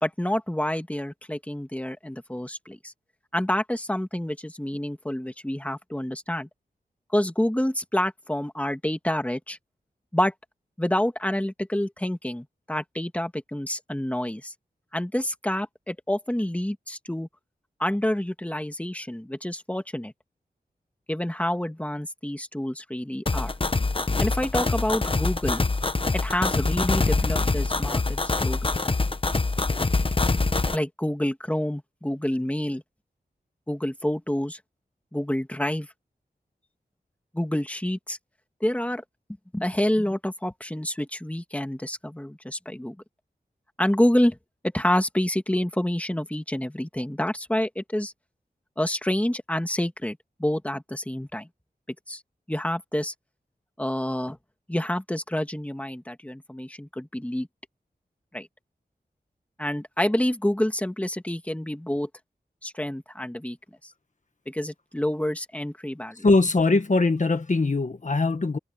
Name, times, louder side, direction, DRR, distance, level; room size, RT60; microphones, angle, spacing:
voice 1, 0.0-2.9 3.3-6.5 7.1-9.6 10.1-10.3 10.8-14.5 14.9-17.3 17.8-20.1 21.1-23.5 24.2-25.6 26.2-28.7 30.7-32.8 33.7-34.6 35.1-35.9 37.3-38.2 38.6-39.0 39.5-43.0 43.8-44.4 44.7-48.1 48.8-51.5 52.1-52.2 52.5-53.1 53.8-54.4 54.7-57.5 58.3-58.5 59.6-62.1 62.6-63.6 64.5-66.3, left 1 dB, 10° left, 2.2 m, -28 dB
sound 1, 23.3-30.8, left 3 dB, 35° left, 1.0 m, -24 dB
voice 2, 66.2-68.6, left 3 dB, 50° left, 1.6 m, -21 dB
wide cardioid pair, 85°, 17 cm